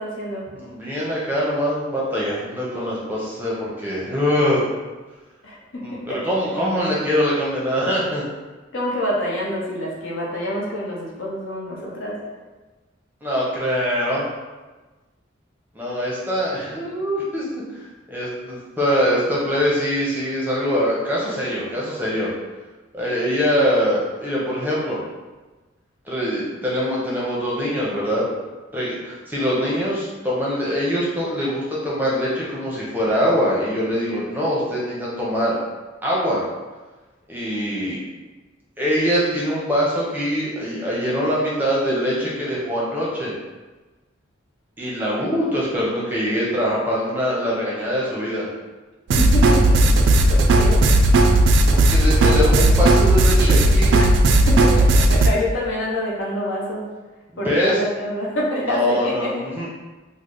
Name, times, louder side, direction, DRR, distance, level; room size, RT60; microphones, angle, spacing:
voice 1, 0.0-0.4 5.4-6.2 8.7-12.2 49.2-50.8 54.0-56.9 57.4-59.3, equal, 75° left, -3 dB, 0.8 m, -27 dB
voice 2, 0.5-4.7 5.8-8.3 13.2-14.2 15.7-17.5 17.7-17.8 18.1-22.3 22.9-25.0 26.1-28.3 28.7-35.6 36.0-36.4 37.3-38.0 38.8-43.3 44.8-48.5 51.7-54.0 57.3-57.8 58.6-59.7, equal, 10° right, -6 dB, 0.6 m, -23 dB
sound 1, 49.1-55.3, right 1 dB, 70° right, 0.3 m, -15 dB
3.1 x 2.0 x 3.8 m, 1.2 s
head